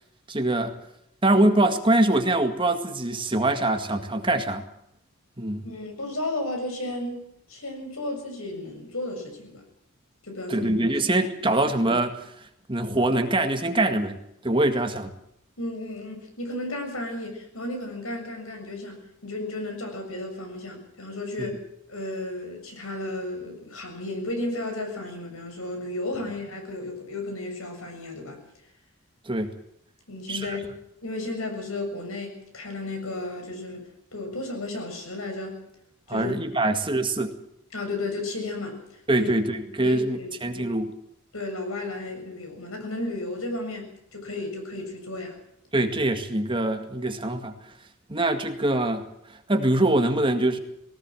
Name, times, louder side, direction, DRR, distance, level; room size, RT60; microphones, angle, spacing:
voice 1, 0.3-0.8 1.2-4.6 5.4-5.7 10.5-12.3 12.7-15.1 21.4-21.5 29.3-29.5 30.3-30.6 36.1-37.4 39.1-40.9 45.7-47.6 48.1-50.6, right 1 dB, 25° right, 6 dB, 2.0 m, -24 dB
voice 2, 5.6-9.6 10.2-10.7 11.1-11.3 15.6-21.6 21.9-28.4 30.1-30.8 31.0-35.6 36.1-36.3 37.7-39.3 39.8-40.7 41.3-45.4, left 2 dB, 75° left, 4 dB, 7.0 m, -34 dB
19.0 x 18.5 x 7.7 m, 0.76 s
head